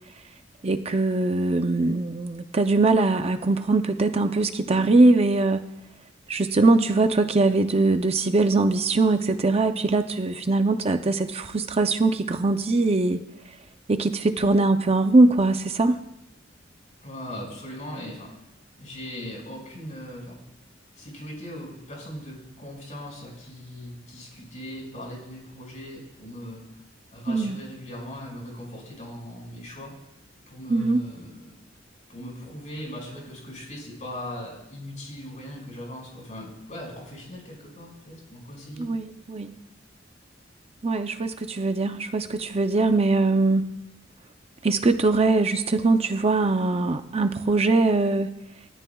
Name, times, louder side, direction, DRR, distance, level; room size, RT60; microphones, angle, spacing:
voice 1, 0.6-5.7 6.3-13.2 13.9-16.0 27.3-27.6 30.7-31.0 38.8-39.5 40.8-43.7 44.6-48.4, right 3 dB, 30° right, 7 dB, 0.6 m, -21 dB
voice 2, 17.0-18.3 18.8-20.4 21.0-26.6 27.1-29.9 30.5-31.5 32.1-38.9, left 1 dB, 40° left, -1 dB, 5.5 m, -39 dB
29.5 x 13.5 x 2.3 m, 0.90 s
head